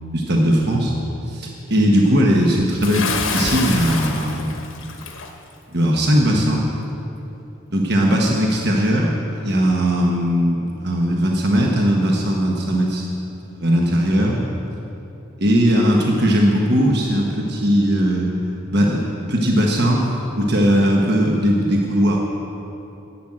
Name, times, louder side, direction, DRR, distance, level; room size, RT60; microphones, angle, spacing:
voice 1, 0.1-0.9 1.3-4.9 5.7-6.7 7.7-13.1 13.4-14.4 15.4-18.3 18.7-20.0 20.3-22.2, equal, 50° right, -1 dB, 1.2 m, -18 dB
Bathtub (filling or washing) / Splash splatter, 2.8-5.3, left 4 dB, 75° left, 1.2 m, -27 dB
11.5 x 7.8 x 8.8 m, 2.9 s
head